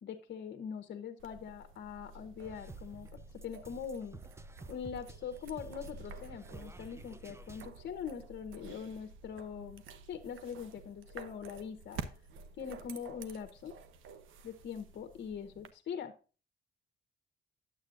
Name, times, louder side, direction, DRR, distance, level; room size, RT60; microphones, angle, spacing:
voice 1, 0.0-4.2 4.7-9.8 10.1-12.0 12.6-13.8 14.4-16.1, left 7 dB, 60° left, 5 dB, 1.0 m, -42 dB
sound 1, 1.2-15.7, right 5 dB, 85° right, 0.9 m, -50 dB
sound 2, 2.4-7.7, right 3 dB, 15° right, 0.6 m, -52 dB
9.6 x 7.8 x 2.5 m, 0.36 s
cardioid pair, 90°, 20 cm